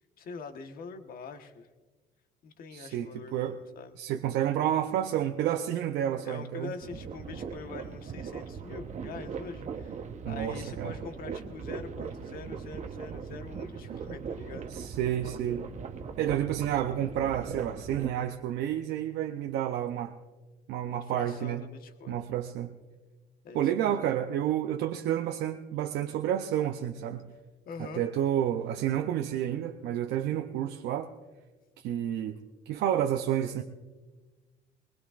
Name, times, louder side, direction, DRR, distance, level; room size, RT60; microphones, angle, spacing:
voice 1, 0.2-1.7 2.4-3.9 6.2-14.7 20.9-22.2 23.4-24.0 27.7-28.0, left 4 dB, 60° left, 6 dB, 1.3 m, -44 dB
voice 2, 2.7-3.6 4.0-6.7 10.2-10.9 14.7-15.7 16.2-20.1 20.7-21.6 22.1-22.7 23.5-27.3 27.8-31.1 31.8-32.4 32.7-33.6, right 11 dB, 80° right, 4 dB, 0.7 m, -30 dB
sound 1, 6.8-18.1, right 6 dB, 45° right, 1.0 m, -39 dB
21.0 x 20.5 x 2.5 m, 1.3 s
cardioid pair, 110°, 17 cm